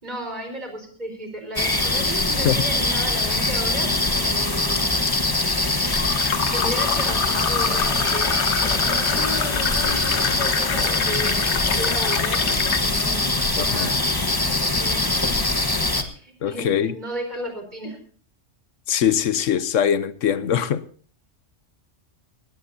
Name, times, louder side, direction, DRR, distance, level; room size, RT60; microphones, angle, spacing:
voice 1, 0.0-3.9 4.2-5.1 6.5-12.5 12.8-13.9 14.8-15.4 16.0-18.0, right 1 dB, 35° right, 4.5 m, -34 dB
sound 1, 1.6-16.0, left 2 dB, 20° left, 1.2 m, -23 dB
Fill (with liquid), 4.8-12.9, left 8 dB, 70° left, 1.1 m, -27 dB
voice 2, 13.6-13.9 16.4-16.9 18.9-20.8, left 9 dB, 90° left, 1.2 m, -22 dB
19.5 x 16.0 x 2.8 m
omnidirectional pair, 1.3 m